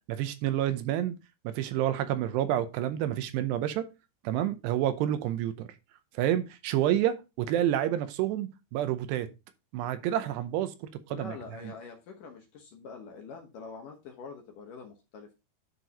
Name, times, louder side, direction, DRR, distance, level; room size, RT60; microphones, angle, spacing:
voice 1, 0.1-1.1 1.4-3.9 4.2-5.7 6.1-9.3 9.7-11.3, right 12 dB, 80° right, 2.8 m, -29 dB
voice 2, 11.1-15.3, left 5 dB, 65° left, 2.2 m, -45 dB
10.5 x 4.7 x 4.0 m
omnidirectional pair, 4.9 m